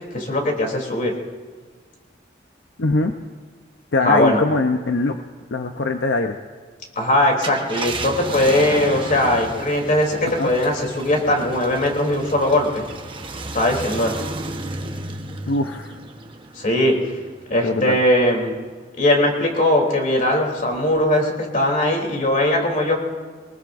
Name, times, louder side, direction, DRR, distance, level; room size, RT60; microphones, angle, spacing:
voice 1, 0.1-1.1 4.0-4.4 6.9-12.9 13.5-14.1 16.5-16.9 17.5-18.5 19.0-23.0, left 1 dB, 45° left, 1 dB, 3.2 m, -19 dB
voice 2, 2.8-3.1 3.9-5.2 5.5-6.4 10.4-10.5 15.5-15.9 17.6-18.0, left 3 dB, 80° left, 5 dB, 0.7 m, -21 dB
Car, 7.3-18.1 18.6-18.7 20.7-21.0, right 2 dB, 30° right, 1.1 m, -33 dB
24.0 x 20.0 x 2.6 m, 1.5 s
head